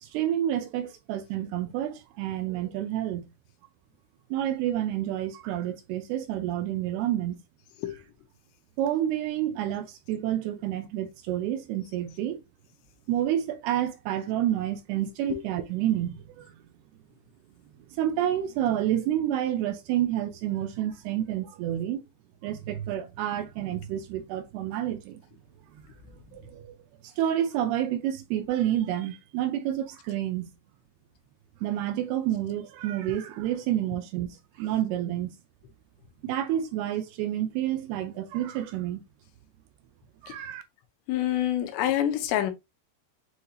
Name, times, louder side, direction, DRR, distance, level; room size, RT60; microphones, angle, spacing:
voice 1, 0.0-3.3 4.3-7.4 7.9-8.0 8.8-12.4 13.1-16.6 17.9-22.0 22.4-25.2 25.7-25.8 26.3-26.7 27.0-30.5 31.6-35.3 36.2-39.0 40.2-40.6, right 11 dB, 80° right, 2.4 m, -29 dB
voice 2, 41.1-42.5, left 12 dB, 90° left, 3.0 m, -26 dB
7.8 x 2.8 x 2.3 m
omnidirectional pair, 4.9 m